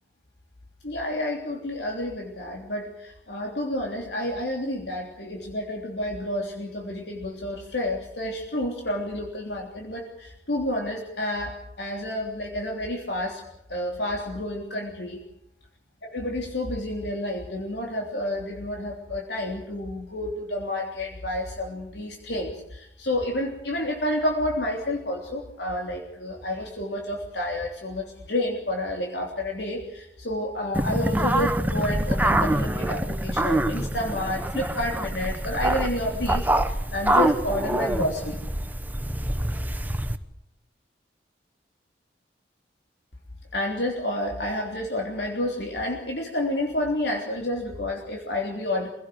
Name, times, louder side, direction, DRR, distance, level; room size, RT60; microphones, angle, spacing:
voice 1, 0.8-13.4 13.7-15.2 16.1-38.4 43.5-48.9, left 1 dB, 70° left, 1 dB, 3.4 m, -30 dB
sound 1, 30.7-40.2, right 1 dB, 10° right, 1.1 m, -25 dB
26.5 x 17.0 x 7.9 m, 0.80 s
head